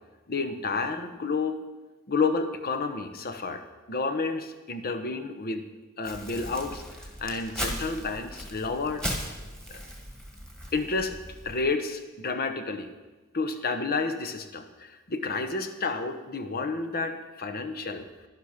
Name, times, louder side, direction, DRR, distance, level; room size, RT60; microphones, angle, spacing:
voice 1, 0.3-1.6 2.1-3.6 3.9-5.6 6.0-6.8 7.2-9.0 9.7-9.8 10.7-11.1 11.4-12.9 13.3-18.1, left 4 dB, 45° left, 7 dB, 0.9 m, -30 dB
Crumpling crinkling, 6.0-11.6, equal, 5° left, 1.7 m, -37 dB
11.5 x 10.5 x 5.1 m, 1.2 s
head